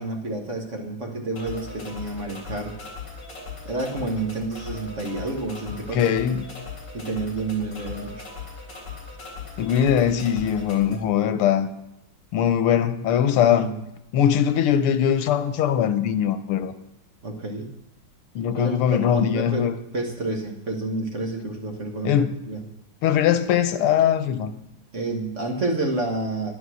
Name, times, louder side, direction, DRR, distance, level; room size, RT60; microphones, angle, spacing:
voice 1, 0.0-2.7 3.6-6.1 6.9-8.2 13.5-13.7 17.2-17.7 18.5-19.7 19.9-22.6 24.9-26.5, right 2 dB, 35° right, 1.6 m, -29 dB
sound 1, 1.4-11.0, left 5 dB, 50° left, 4.1 m, -39 dB
voice 2, 5.9-6.5 9.6-11.7 12.3-13.7 14.1-16.7 18.4-19.7 22.0-22.4 23.0-24.5, left 9 dB, 85° left, 1.8 m, -21 dB
12.0 x 10.5 x 6.3 m
omnidirectional pair, 2.4 m